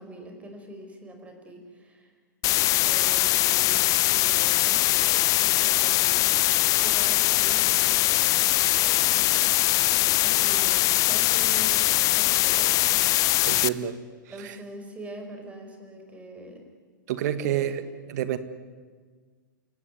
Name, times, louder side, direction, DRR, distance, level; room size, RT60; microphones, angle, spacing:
voice 1, 0.0-2.2 2.5-6.5 6.8-8.5 9.0-9.5 10.2-13.0 14.3-16.6 17.4-17.7, right 1 dB, 10° right, 4 dB, 5.5 m, -43 dB
sound 1, 2.4-13.7, left 17 dB, 35° left, 0.7 m, -22 dB
voice 2, 13.4-13.9 14.4-14.6 17.1-17.8 18.1-18.4, right 11 dB, 55° right, 12 dB, 1.8 m, -28 dB
29.5 x 17.0 x 9.6 m, 1.5 s
hypercardioid pair, 110°, 11 cm